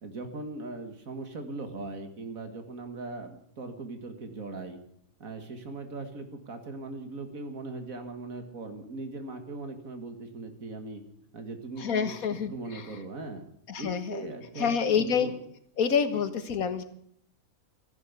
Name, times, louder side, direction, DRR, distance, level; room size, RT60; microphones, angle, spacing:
voice 1, 0.0-4.8 5.2-11.0 11.3-12.2 12.5-13.4 13.8-15.4, right 3 dB, 70° right, 6 dB, 2.4 m, -39 dB
voice 2, 11.8-12.9 13.7-14.2 14.6-15.3 15.8-16.8, left 7 dB, 75° left, 10 dB, 1.8 m, -27 dB
14.5 x 11.0 x 8.2 m, 0.68 s
omnidirectional pair, 1.5 m